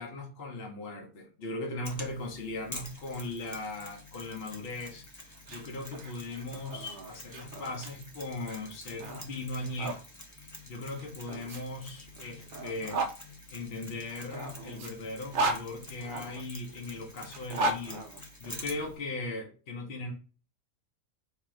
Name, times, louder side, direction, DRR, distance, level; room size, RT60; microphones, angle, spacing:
voice 1, 0.0-5.1 5.5-10.0 10.7-13.0 13.5-18.1 18.4-20.1, left 2 dB, 50° left, 0 dB, 1.0 m, -38 dB
Mechanisms, 1.8-18.9, left 1 dB, 15° left, 0.8 m, -48 dB
sound 1, 5.3-10.0 11.0-13.2 14.1-16.4 17.2-18.9, right 2 dB, 55° right, 0.6 m, -36 dB
3.6 x 2.9 x 4.7 m, 0.37 s
omnidirectional pair, 1.5 m